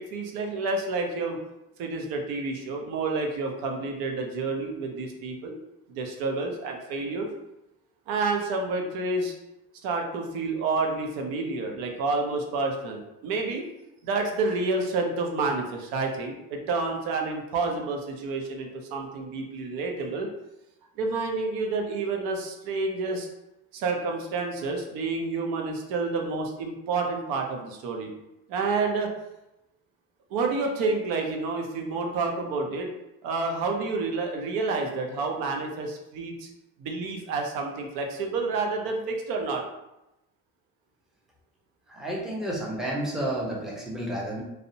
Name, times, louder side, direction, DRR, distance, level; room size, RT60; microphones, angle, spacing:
voice 1, 0.0-1.4 1.8-5.6 5.9-7.3 8.1-9.3 9.8-13.6 14.0-20.3 21.0-23.3 23.7-28.1 28.5-29.1 30.3-32.9 33.2-36.5 36.8-39.6, right 3 dB, 90° right, 2 dB, 0.6 m, -29 dB
voice 2, 41.9-44.4, right 1 dB, ahead, -4 dB, 0.5 m, -31 dB
2.6 x 2.0 x 2.6 m, 0.92 s
cardioid pair, 120°, 34 cm